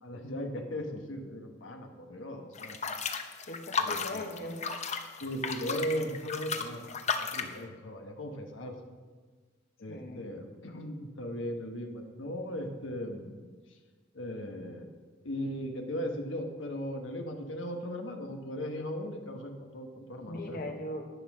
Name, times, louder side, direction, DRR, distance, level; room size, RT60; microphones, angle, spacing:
voice 1, 0.0-2.8 3.1-3.5 3.8-4.3 5.2-8.8 9.8-13.4 14.1-14.9 15.2-20.6, equal, 75° left, 3 dB, 1.3 m, -38 dB
sound 1, 2.5-7.6, left 5 dB, 35° left, 0.8 m, -34 dB
voice 2, 3.5-4.6 9.9-10.3 20.3-21.1, left 1 dB, 50° left, 3 dB, 1.4 m, -39 dB
11.5 x 8.5 x 6.1 m, 1.4 s
head